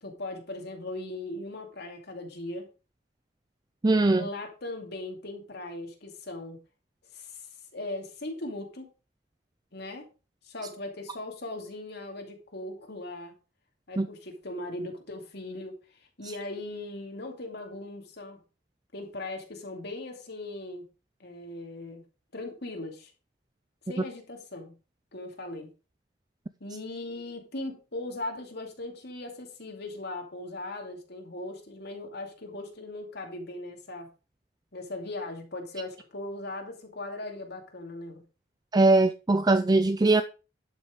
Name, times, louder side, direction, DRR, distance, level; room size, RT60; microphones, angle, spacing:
voice 1, 0.0-2.7 4.1-6.6 7.1-7.5 7.7-8.9 9.7-10.1 10.4-13.3 13.9-15.8 16.2-18.4 18.9-20.8 21.2-22.0 22.3-23.1 23.9-24.7 25.1-25.7 26.6-34.1 34.7-38.2, left 2 dB, 60° left, 2.5 m, -39 dB
voice 2, 3.8-4.3 14.0-14.1 38.7-40.2, right 2 dB, 20° right, 0.5 m, -21 dB
12.0 x 6.3 x 4.9 m
head